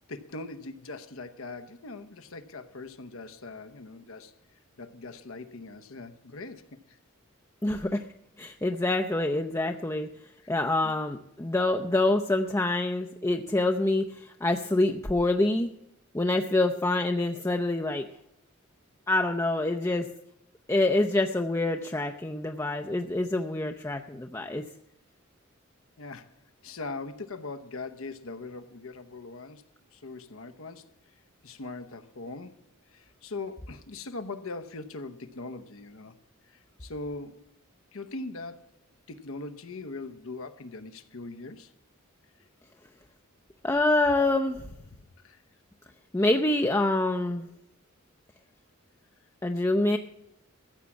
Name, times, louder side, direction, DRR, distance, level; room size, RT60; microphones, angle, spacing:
voice 1, 0.1-4.3 4.8-6.8 10.4-10.5 10.8-10.9 26.0-26.3 26.6-29.6 29.9-30.9 31.4-32.6 32.9-36.1 36.5-37.5 37.9-38.7 39.1-41.7 44.9-45.0 45.2-45.4, left 3 dB, 70° left, 0.9 m, -41 dB
voice 2, 7.6-8.0 8.4-10.1 10.5-15.7 16.1-18.1 19.1-20.1 20.7-24.6 43.6-44.6 46.1-47.5 49.4-50.0, left 2 dB, 15° left, 0.6 m, -26 dB
14.5 x 7.4 x 7.1 m
head